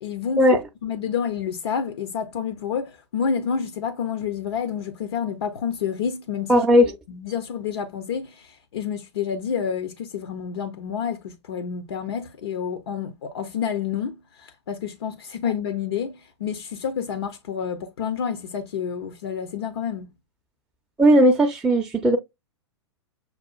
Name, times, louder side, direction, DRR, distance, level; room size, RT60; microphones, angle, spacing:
voice 1, 0.0-6.7 7.1-16.1 16.4-20.1, left 7 dB, 60° left, 0.6 m, -29 dB
voice 2, 6.5-6.9 21.0-22.2, equal, 5° right, 0.5 m, -16 dB
6.7 x 2.3 x 2.3 m
figure-of-eight pair, 100°, 15 cm